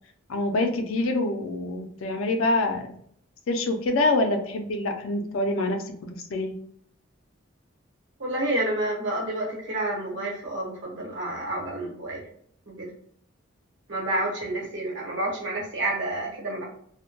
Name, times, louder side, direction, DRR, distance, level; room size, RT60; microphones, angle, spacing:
voice 1, 0.3-2.9 3.5-6.5, left 2 dB, 80° left, 4 dB, 0.4 m, -26 dB
voice 2, 8.2-12.2 12.7-12.9 13.9-16.6, right 1 dB, 60° right, -3 dB, 0.9 m, -29 dB
2.1 x 2.1 x 2.9 m, 0.64 s
head